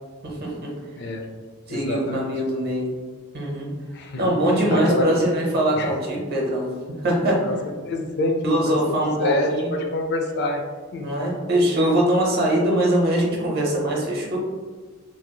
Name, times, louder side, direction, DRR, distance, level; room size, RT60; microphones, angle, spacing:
voice 1, 0.2-0.7 1.7-2.9 3.3-3.7 4.2-6.6 7.0-7.5 8.4-9.7 11.0-14.4, right 1 dB, 50° right, -2 dB, 0.7 m, -22 dB
voice 2, 0.9-1.3 1.7-2.3 3.9-4.2 4.7-5.1 5.7-5.9 7.5-7.6 7.8-10.6 10.9-11.1, left 2 dB, 55° left, 3 dB, 0.4 m, -26 dB
2.9 x 2.5 x 2.2 m, 1.4 s
head